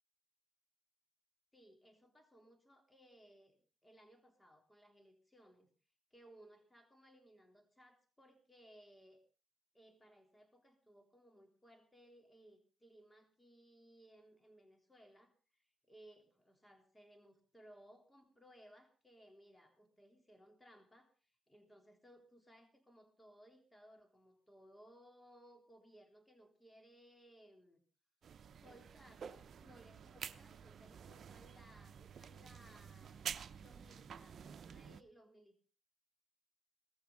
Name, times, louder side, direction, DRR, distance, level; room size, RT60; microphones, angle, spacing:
voice 1, 1.5-5.7 6.1-9.2 9.7-15.3 15.6-27.8 28.6-33.3 33.6-35.6, equal, 15° left, 5 dB, 3.5 m, -63 dB
sound 1, 28.2-35.0, right 7 dB, 60° right, 0.8 m, -50 dB
17.5 x 14.5 x 3.9 m, 0.37 s
supercardioid pair, 55°, 0 cm